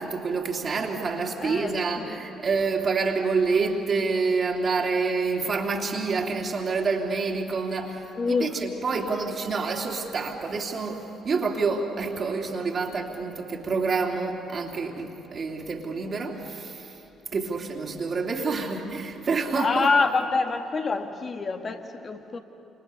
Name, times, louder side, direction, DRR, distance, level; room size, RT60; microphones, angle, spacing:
voice 1, 0.0-8.0 8.4-16.9 17.3-19.9, right 4 dB, 45° right, 3.1 m, -27 dB
voice 2, 1.4-1.8 2.1-2.2 8.2-8.6 19.5-22.4, left 4 dB, 40° left, 2.1 m, -26 dB
28.0 x 27.5 x 7.0 m
hypercardioid pair, 50°, 0 cm